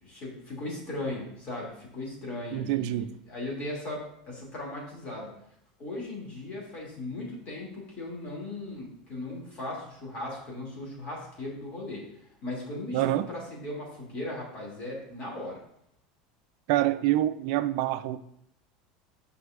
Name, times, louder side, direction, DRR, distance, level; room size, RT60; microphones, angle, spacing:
voice 1, 0.0-5.3 5.8-12.0 12.4-15.6, left 2 dB, 40° left, -2 dB, 2.6 m, -37 dB
voice 2, 2.5-3.1 12.9-13.3 16.7-18.2, right 14 dB, 65° right, 13 dB, 0.4 m, -26 dB
7.9 x 5.5 x 2.5 m, 0.71 s
supercardioid pair, 130°, 3 cm